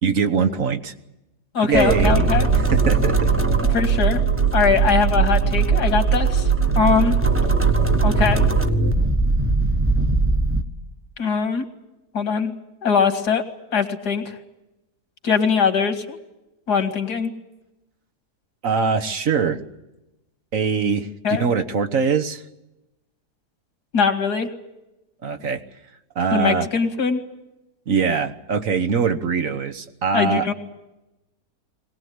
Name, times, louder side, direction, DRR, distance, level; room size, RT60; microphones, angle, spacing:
voice 1, 0.0-0.9 1.6-2.3 2.5-3.3 18.6-19.6 20.5-22.4 25.2-25.6 26.1-26.7 27.9-30.5, right 6 dB, 55° right, 8 dB, 1.5 m, -22 dB
voice 2, 1.5-2.5 3.7-4.2 4.5-6.5 6.8-7.1 8.0-8.5 11.2-11.6 12.1-12.5 12.8-13.4 13.7-14.4 15.2-16.2 16.7-17.3 21.2-21.4 23.9-24.5 26.3-27.2 30.1-30.5, left 6 dB, 80° left, 9 dB, 2.6 m, -21 dB
sound 1, 1.7-10.6, right 1 dB, 10° right, 1.1 m, -23 dB
sound 2, 1.9-8.6, right 7 dB, 80° right, 3.3 m, -20 dB
22.0 x 18.5 x 9.5 m, 0.97 s
omnidirectional pair, 1.7 m